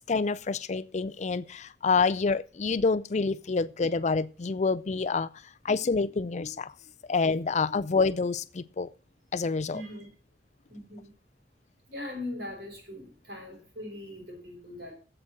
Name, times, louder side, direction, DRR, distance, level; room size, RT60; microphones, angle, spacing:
voice 1, 0.1-5.3 5.6-6.7 7.1-8.9 9.3-9.8, left 4 dB, 40° left, 0.5 m, -27 dB
voice 2, 9.7-10.1 10.7-11.1 11.9-15.0, left 1 dB, 65° right, 5.9 m, -40 dB
8.3 x 7.9 x 7.6 m
head